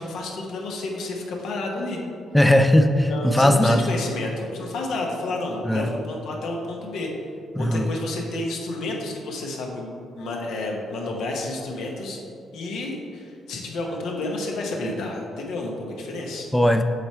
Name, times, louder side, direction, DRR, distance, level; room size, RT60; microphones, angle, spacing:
voice 1, 0.0-2.0 3.1-7.1 7.6-9.9 10.2-12.2 12.5-16.5, left 2 dB, 80° left, 0 dB, 1.1 m, -30 dB
voice 2, 2.3-3.9 5.6-5.9 7.6-7.9 16.5-16.8, left 1 dB, 5° left, 7 dB, 0.4 m, -18 dB
7.8 x 3.5 x 4.4 m, 2.5 s
cardioid pair, 90°, 0 cm